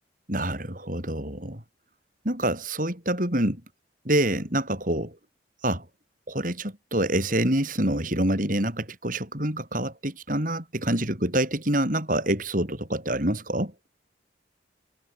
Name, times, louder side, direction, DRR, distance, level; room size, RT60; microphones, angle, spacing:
voice 1, 0.3-1.6 2.2-3.6 4.1-5.2 5.6-5.8 6.3-13.7, right 1 dB, 45° right, 5.9 m, -26 dB
head